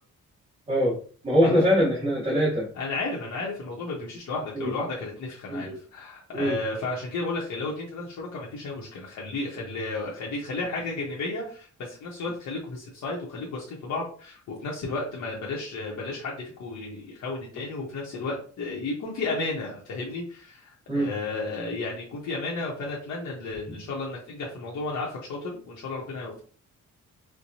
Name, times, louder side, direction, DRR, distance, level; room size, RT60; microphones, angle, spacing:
voice 1, 1.2-2.7 4.5-4.7 5.5-5.8 6.3-6.5 20.9-21.1, equal, 20° right, -8 dB, 1.2 m, -23 dB
voice 2, 2.7-26.4, left 3 dB, 65° left, -3 dB, 0.9 m, -33 dB
4.5 x 2.2 x 2.7 m, 0.42 s
wide cardioid pair, 170°, 31 cm